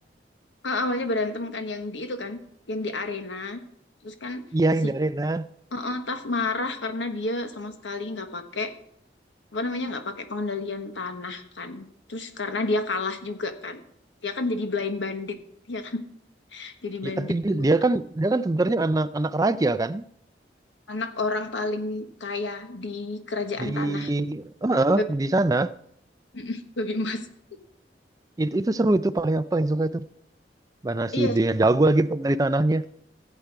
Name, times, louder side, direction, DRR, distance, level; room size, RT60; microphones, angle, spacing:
voice 1, 0.6-2.4 2.7-3.6 4.0-4.4 4.8-4.9 5.7-8.7 9.5-13.8 14.2-15.4 15.7-16.0 16.5-17.6 20.9-24.1 24.9-25.0 26.3-27.2 31.1-31.4, left 2 dB, 85° left, 1.3 m, -30 dB
voice 2, 4.5-5.4 17.0-20.0 23.6-25.7 28.4-30.0 30.8-32.8, right 2 dB, 20° right, 0.4 m, -23 dB
15.0 x 8.1 x 4.7 m
head